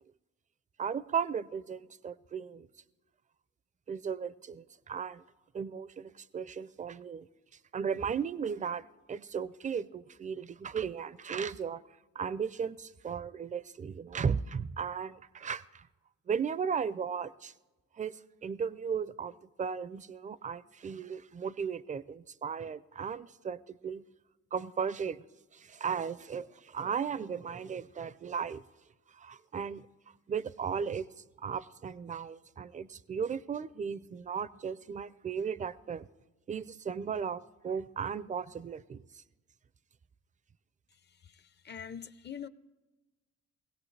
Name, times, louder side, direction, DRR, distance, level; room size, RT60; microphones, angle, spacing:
voice 1, 0.8-2.7 3.9-5.2 5.5-7.3 7.7-8.8 9.1-11.8 12.2-15.9 16.3-17.5 18.0-24.0 24.5-25.2 25.5-28.6 29.2-29.9 30.3-31.1 31.4-36.1 36.5-39.2, right 6 dB, 25° right, 18 dB, 0.4 m, -36 dB
voice 2, 41.2-42.5, left 8 dB, 35° left, 14 dB, 0.6 m, -44 dB
20.5 x 16.5 x 3.3 m, 1.2 s
cardioid pair, 90°, 30 cm